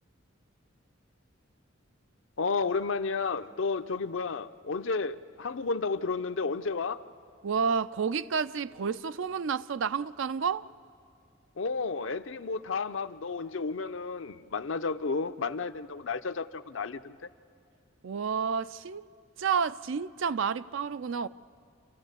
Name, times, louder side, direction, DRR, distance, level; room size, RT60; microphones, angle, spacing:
voice 1, 2.4-7.0 11.6-17.3, left 4 dB, 70° left, 0.7 m, -32 dB
voice 2, 7.4-10.7 18.0-19.1 19.4-21.3, right 6 dB, 65° right, 0.4 m, -30 dB
28.0 x 14.5 x 8.2 m
head